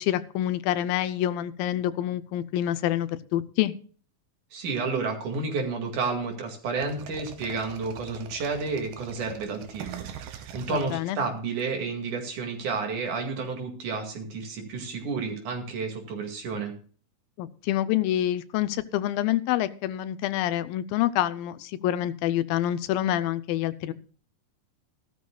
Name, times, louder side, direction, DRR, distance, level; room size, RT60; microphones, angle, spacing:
voice 1, 0.0-3.7 10.7-11.2 17.4-23.9, left 12 dB, 80° left, 14 dB, 2.3 m, -27 dB
voice 2, 4.5-16.7, right 4 dB, 60° right, 3 dB, 3.4 m, -31 dB
sound 1, 6.8-11.6, right 8 dB, 85° right, 3.1 m, -42 dB
16.0 x 12.5 x 2.3 m, 0.42 s
omnidirectional pair, 4.1 m